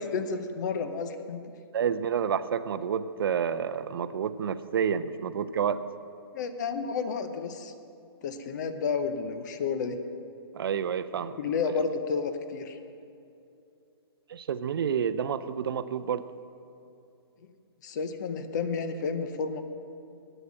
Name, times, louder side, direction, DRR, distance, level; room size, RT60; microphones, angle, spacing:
voice 1, 0.0-1.4 6.3-7.7 8.2-10.0 11.4-12.8 17.8-19.6, left 5 dB, 45° left, 9 dB, 0.8 m, -31 dB
voice 2, 1.7-5.8 10.5-11.4 14.3-16.2, right 7 dB, 60° right, 12 dB, 0.5 m, -29 dB
9.1 x 7.9 x 7.5 m, 2.7 s
hypercardioid pair, 155°, 14 cm